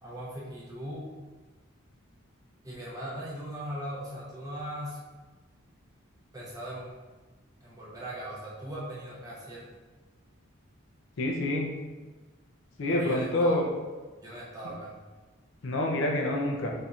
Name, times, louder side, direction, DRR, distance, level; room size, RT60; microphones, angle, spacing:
voice 1, 0.0-1.1 2.6-5.0 6.3-7.0 7.6-9.7 12.9-13.6 14.2-14.9, right 1 dB, 15° right, -6 dB, 0.7 m, -39 dB
voice 2, 11.2-11.7 12.8-13.7 15.6-16.7, left 1 dB, 65° left, 0 dB, 0.5 m, -27 dB
4.2 x 2.7 x 2.4 m, 1.3 s
head